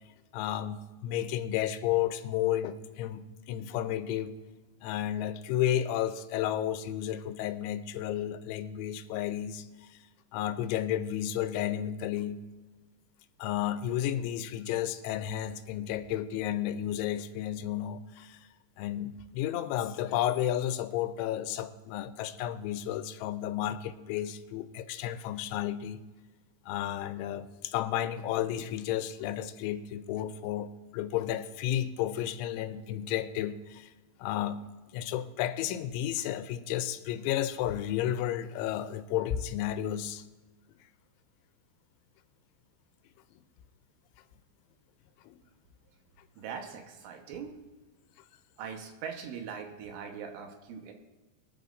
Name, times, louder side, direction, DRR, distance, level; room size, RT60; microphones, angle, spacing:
voice 1, 0.3-4.3 4.8-9.7 10.3-12.4 13.4-18.4 18.8-26.0 26.7-33.9 34.2-34.6 34.9-40.2 45.3-45.4, left 11 dB, 90° left, 11 dB, 3.0 m, -32 dB
voice 2, 46.4-47.6 48.6-50.9, right 7 dB, 90° right, 4 dB, 3.8 m, -41 dB
22.5 x 10.5 x 2.6 m, 1.2 s
omnidirectional pair, 5.4 m